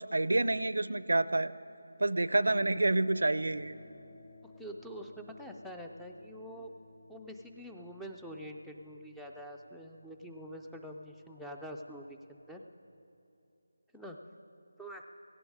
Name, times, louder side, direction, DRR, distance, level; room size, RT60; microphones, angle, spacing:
voice 1, 0.0-1.5 2.0-3.7, right 2 dB, 75° right, 16 dB, 0.5 m, -28 dB
sound 1, 2.6-12.7, left 3 dB, 40° left, 1.4 m, -57 dB
voice 2, 4.4-6.7 7.1-12.6 13.9-14.2 14.8-15.0, equal, ahead, 1 dB, 0.4 m, -45 dB
17.0 x 16.0 x 4.8 m, 2.8 s
figure-of-eight pair, 175°, 0 cm